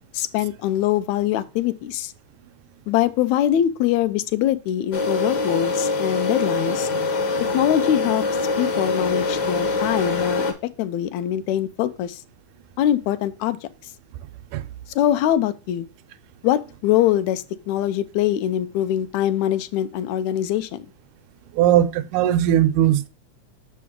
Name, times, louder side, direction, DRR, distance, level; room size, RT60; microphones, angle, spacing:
voice 1, 0.1-2.1 2.9-6.9 7.5-8.2 8.6-10.5 10.8-12.2 12.8-13.6 15.0-15.9 16.4-20.9, left 11 dB, 80° left, 1.8 m, -23 dB
sound 1, 4.9-10.5, left 3 dB, 55° left, 1.1 m, -24 dB
voice 2, 21.5-23.1, right 11 dB, 80° right, 2.0 m, -18 dB
6.7 x 5.2 x 3.6 m
omnidirectional pair, 3.5 m